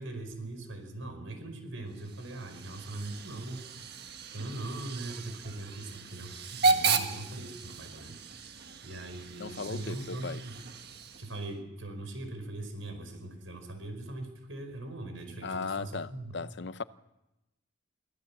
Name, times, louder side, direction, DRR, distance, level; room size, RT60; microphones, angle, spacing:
voice 1, 0.0-3.8 4.3-8.2 8.8-10.6 11.2-16.4, right 2 dB, 80° right, 5.1 m, -41 dB
Hiss / Train / Alarm, 1.9-11.5, right 4 dB, 55° right, 1.5 m, -34 dB
voice 2, 9.4-10.4 15.4-16.8, left 4 dB, 60° left, 0.6 m, -37 dB
24.5 x 16.0 x 7.3 m
head